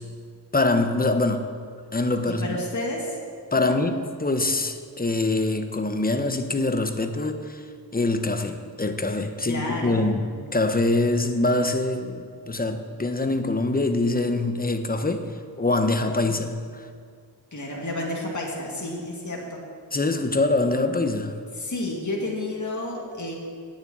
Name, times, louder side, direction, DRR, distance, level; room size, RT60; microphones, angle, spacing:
voice 1, 0.5-1.4 1.9-2.6 3.5-7.6 7.9-15.3 15.6-16.9 19.9-21.4, left 2 dB, 20° left, 7 dB, 0.9 m, -24 dB
voice 2, 2.3-3.2 3.7-3.8 9.5-10.0 17.5-19.6 21.6-23.3, left 1 dB, 45° left, -2 dB, 2.2 m, -31 dB
9.1 x 7.4 x 8.7 m, 2.1 s
wide cardioid pair, 65°, 42 cm